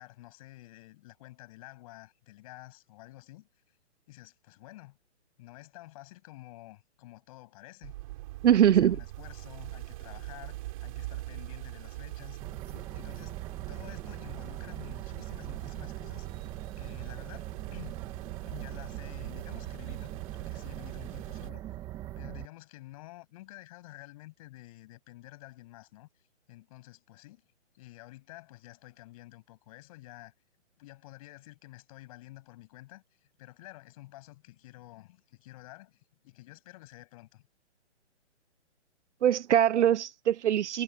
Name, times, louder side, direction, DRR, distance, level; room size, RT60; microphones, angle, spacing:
voice 1, 0.0-3.8 4.1-5.0 5.4-7.9 8.5-12.4 12.7-16.4 16.8-18.0 18.5-21.7 22.2-27.5 27.7-30.3 30.8-37.4, left 18 dB, 30° left, 7.6 m, -50 dB
sound 1, 7.8-21.5, right 18 dB, 30° right, 5.2 m, -43 dB
voice 2, 8.4-9.0 39.2-40.8, right 10 dB, 75° right, 0.6 m, -22 dB
sound 2, 12.4-22.5, right 14 dB, 10° right, 1.1 m, -41 dB
hypercardioid pair, 165°, 35 cm